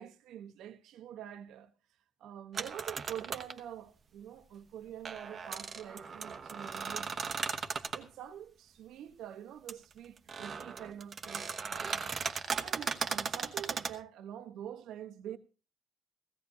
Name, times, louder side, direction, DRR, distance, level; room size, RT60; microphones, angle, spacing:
voice 1, 0.0-1.7 2.2-7.4 7.9-12.1 12.6-15.4, right 10 dB, 70° right, 1.1 m, -46 dB
sound 1, 2.5-3.6 5.1-8.1 9.7-9.8 10.2-14.0, right 5 dB, 30° right, 1.2 m, -37 dB
16.5 x 16.0 x 2.8 m
cardioid pair, 145°, 0 cm